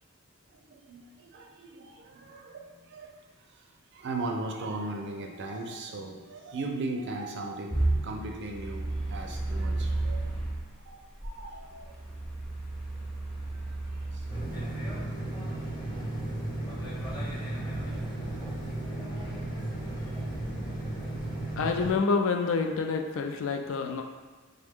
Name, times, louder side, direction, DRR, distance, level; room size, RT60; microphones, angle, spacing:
voice 1, 0.5-3.2 3.6-3.7 3.9-10.4 10.8-11.9 14.1-14.3 17.4-17.5 17.8-18.0 18.4-18.9 19.6-19.7 20.1-20.2, right 2 dB, 55° right, 2 dB, 0.5 m, -38 dB
sound 1, 7.7-10.6 11.2-14.4, right 2 dB, ahead, 0.4 m, -32 dB
sound 2, 14.3-21.9, right 1 dB, 20° left, 0.8 m, -34 dB
voice 2, 21.6-24.0, left 4 dB, 65° left, 4 dB, 0.4 m, -27 dB
3.4 x 2.1 x 3.5 m, 1.4 s
head